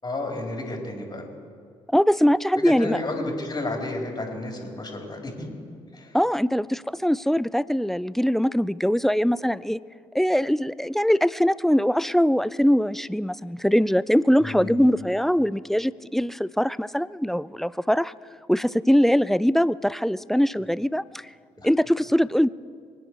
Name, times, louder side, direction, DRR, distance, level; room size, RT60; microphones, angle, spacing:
voice 1, 0.0-1.2 2.6-5.3 5.9-6.2 14.4-14.8 21.6-21.7, left 2 dB, 30° left, 1 dB, 4.3 m, -31 dB
voice 2, 1.9-3.0 6.1-9.8 10.1-18.1 18.5-21.3 21.6-22.5, equal, ahead, 19 dB, 0.4 m, -22 dB
24.0 x 10.0 x 4.8 m, 2.1 s
hypercardioid pair, 50°, 13 cm